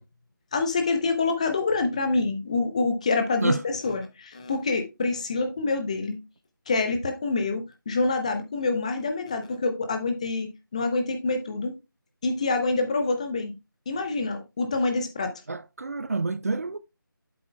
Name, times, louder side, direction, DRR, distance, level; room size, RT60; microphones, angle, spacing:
voice 1, 0.5-6.2 6.7-11.7 12.2-13.5 13.9-15.3, left 3 dB, 20° left, 0.7 m, -26 dB
voice 2, 15.5-16.8, right 3 dB, 45° right, 0.5 m, -28 dB
7.9 x 7.6 x 2.2 m
figure-of-eight pair, 165°, 12 cm